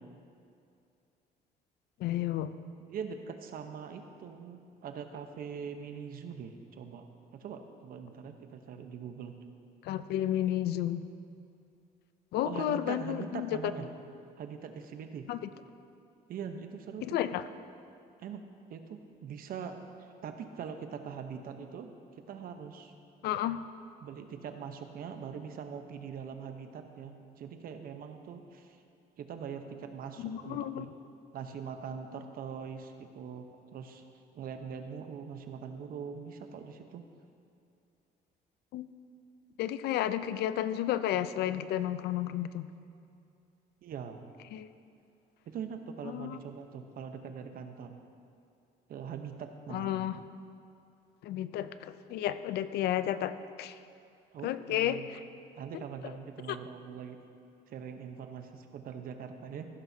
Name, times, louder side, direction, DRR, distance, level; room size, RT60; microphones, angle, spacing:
voice 1, 2.0-2.6 9.8-11.0 12.3-13.5 15.3-15.5 17.0-17.4 23.2-23.7 30.2-30.9 38.7-38.9 39.6-42.7 44.5-44.7 46.1-46.4 49.7-50.2 51.2-53.8 54.4-55.2 55.7-55.8 56.5-56.6, left 12 dB, 75° left, 13 dB, 0.5 m, -32 dB
voice 2, 2.9-7.0 7.3-9.3 12.4-13.9 14.4-15.3 16.3-17.2 18.2-18.4 18.7-19.8 20.2-21.9 22.3-22.9 24.0-28.8 29.2-30.9 31.3-33.5 33.7-34.0 34.3-37.0 43.8-44.2 45.5-48.0 48.9-50.0 54.3-55.1 55.5-57.2 57.7-59.7, right 7 dB, 60° right, 7 dB, 0.9 m, -42 dB
15.0 x 12.5 x 2.8 m, 2.5 s
cardioid pair, 110°, 17 cm